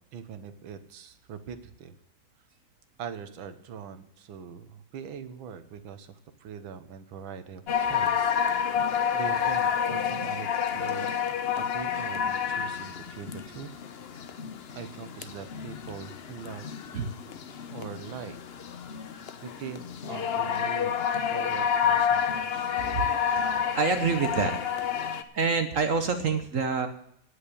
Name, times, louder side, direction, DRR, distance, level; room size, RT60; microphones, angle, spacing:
voice 1, 0.1-2.0 3.0-8.8 9.1-13.7 14.7-16.7 17.7-18.4 19.1-21.0 21.3-22.7, right 7 dB, 80° right, 10 dB, 1.8 m, -42 dB
sound 1, 7.7-25.2, left 8 dB, 70° left, 0.5 m, -29 dB
voice 2, 23.7-24.6 25.3-26.9, right 5 dB, 50° right, 7 dB, 1.1 m, -26 dB
9.8 x 8.3 x 8.5 m, 0.72 s
omnidirectional pair, 2.2 m